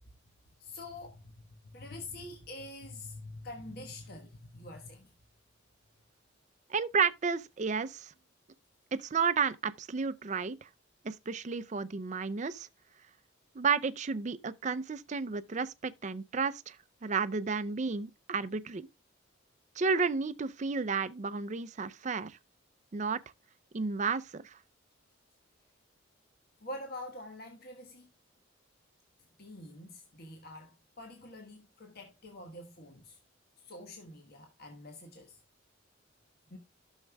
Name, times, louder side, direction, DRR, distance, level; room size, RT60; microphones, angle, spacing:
voice 1, 0.6-5.1 26.6-28.1 29.4-33.2 33.6-35.4 36.5-36.6, left 1 dB, 50° left, 1.3 m, -46 dB
voice 2, 6.7-8.1 8.9-10.7 11.0-12.7 13.6-16.8 17.0-18.9 19.8-22.4 22.9-23.2 23.7-24.6, right 5 dB, 35° right, 0.5 m, -32 dB
13.5 x 6.4 x 2.2 m
head